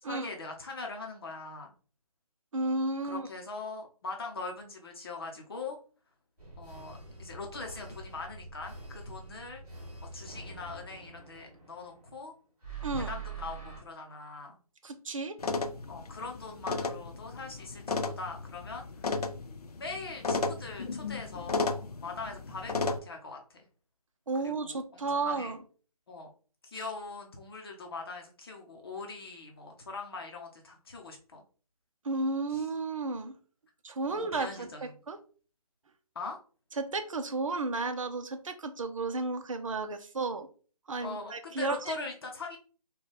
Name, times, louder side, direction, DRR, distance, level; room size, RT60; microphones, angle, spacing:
voice 1, 0.1-1.7 3.0-5.8 6.6-9.6 10.1-12.3 12.9-14.6 15.9-19.1 19.8-23.6 24.4-25.6 26.1-26.3 26.7-31.4 32.5-32.6 34.1-34.9 36.1-36.4 41.0-42.6, left 3 dB, 40° left, 2 dB, 0.7 m, -41 dB
voice 2, 2.5-3.3 12.8-13.1 14.8-15.4 24.3-25.6 26.7-26.8 32.0-33.3 33.8-35.2 36.8-40.5 40.9-42.0, right 3 dB, 60° right, 8 dB, 0.7 m, -33 dB
sound 1, 6.4-12.2 12.6-13.8, right 5 dB, 5° right, 1.8 m, -45 dB
sound 2, 15.4-23.0, left 3 dB, 80° left, 0.5 m, -34 dB
4.0 x 2.3 x 3.3 m, 0.38 s
figure-of-eight pair, 160°, 19 cm